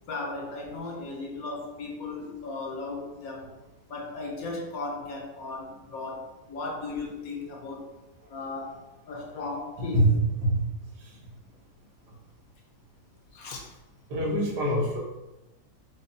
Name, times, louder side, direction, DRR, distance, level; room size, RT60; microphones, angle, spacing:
voice 1, 0.1-3.5 3.9-7.8 8.3-8.8 9.1-10.0 13.3-13.6, left 3 dB, 65° left, -1 dB, 1.0 m, -36 dB
voice 2, 9.8-10.6 11.0-11.2 14.1-15.0, right 1 dB, 85° right, -3 dB, 1.5 m, -25 dB
5.0 x 2.2 x 2.6 m, 1.0 s
omnidirectional pair, 1.7 m